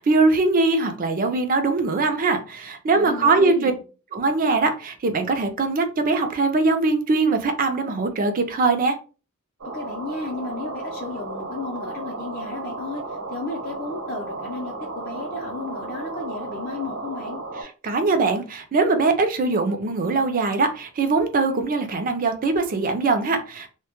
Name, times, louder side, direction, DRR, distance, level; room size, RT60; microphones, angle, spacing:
voice 1, 0.0-3.7 4.1-9.0 17.8-23.7, right 3 dB, 40° right, 0.4 m, -21 dB
voice 2, 2.9-3.8 9.6-17.4, left 3 dB, 45° left, 0.5 m, -34 dB
sound 1, 9.6-17.6, right 3 dB, 70° right, 0.9 m, -34 dB
2.1 x 2.1 x 2.9 m
head